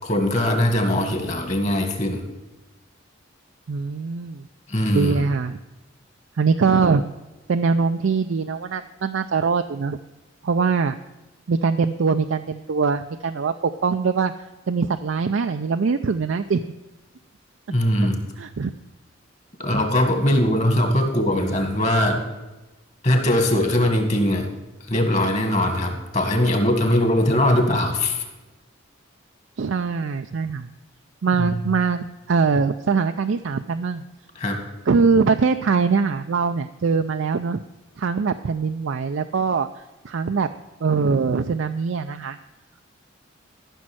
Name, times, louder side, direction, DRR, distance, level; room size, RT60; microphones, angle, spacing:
voice 1, 0.0-2.3 4.7-5.2 17.7-18.2 19.6-22.2 23.0-24.5 24.8-28.2 31.4-31.6 34.4-34.6, left 1 dB, 35° left, 4 dB, 1.9 m, -21 dB
voice 2, 3.7-4.5 4.9-5.6 6.4-7.1 7.5-10.0 10.4-11.0 11.5-13.5 13.8-14.3 14.7-16.6 18.4-18.7 29.6-30.7 31.2-34.0 34.9-37.6 38.0-39.7 40.0-40.5 40.8-42.4, right 5 dB, 75° right, 8 dB, 0.4 m, -22 dB
13.5 x 6.3 x 6.2 m, 1.1 s
head